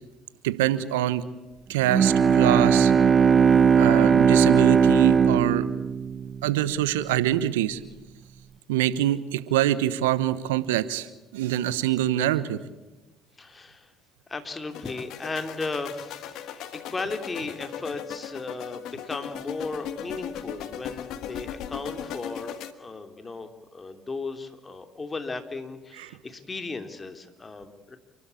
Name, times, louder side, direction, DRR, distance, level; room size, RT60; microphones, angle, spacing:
voice 1, 0.4-1.2 1.7-2.9 3.8-5.6 6.4-7.8 8.7-11.1 11.3-12.6 26.0-26.1, right 13 dB, 85° right, 15 dB, 1.0 m, -25 dB
Bowed string instrument, 1.9-6.9, right 6 dB, 45° right, 1.2 m, -19 dB
voice 2, 13.4-13.9 14.3-28.0, left 3 dB, 30° left, 7 dB, 2.9 m, -36 dB
sound 1, 14.7-22.7, left 10 dB, 65° left, 1.4 m, -38 dB
29.0 x 12.5 x 8.5 m, 1.1 s
hypercardioid pair, 55°, 0 cm